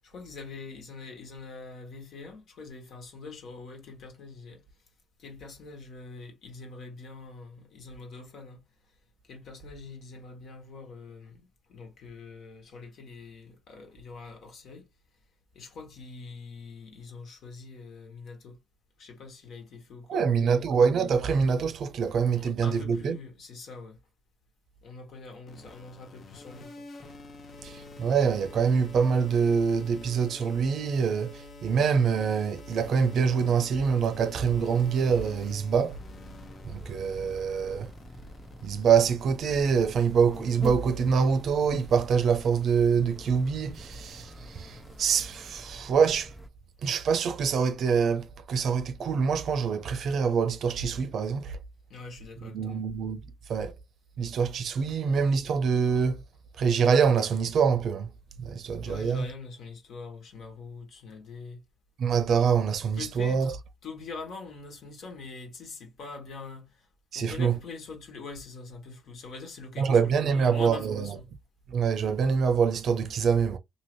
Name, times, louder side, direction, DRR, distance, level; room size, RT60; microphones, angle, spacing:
voice 1, 0.0-4.6 5.2-8.6 9.2-14.9 15.5-18.6 19.0-20.7 22.3-24.0 24.8-26.9 51.9-52.8 58.8-61.6 62.9-63.5 63.8-66.9 67.1-71.3, left 4 dB, 70° left, 1.4 m, -44 dB
voice 2, 20.1-23.2 27.6-36.0 36.6-37.9 38.6-46.3 46.8-51.6 52.5-53.2 53.5-53.7 54.2-56.2 56.6-58.1 58.4-59.3 62.0-63.5 67.1-67.5 69.8-71.2 71.7-73.6, right 6 dB, 65° right, 0.6 m, -25 dB
sound 1, 25.5-45.0, left 3 dB, 50° left, 0.7 m, -49 dB
sound 2, 34.5-46.5, equal, ahead, 0.5 m, -45 dB
2.8 x 2.8 x 3.0 m
cardioid pair, 90°, 0 cm